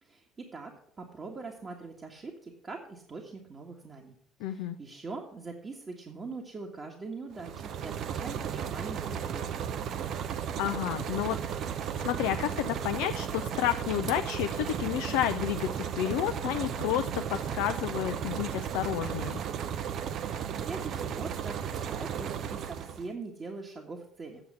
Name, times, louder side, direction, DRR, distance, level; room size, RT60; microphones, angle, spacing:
voice 1, 0.0-9.7 20.2-24.4, right 3 dB, 35° right, 1 dB, 1.7 m, -42 dB
voice 2, 4.4-4.8 10.6-11.4 11.7-19.4, left 12 dB, 70° left, 7 dB, 0.5 m, -31 dB
sound 1, 7.3-23.1, right 8 dB, 55° right, 0.8 m, -35 dB
8.9 x 7.0 x 7.4 m, 0.68 s
hypercardioid pair, 55°, 0 cm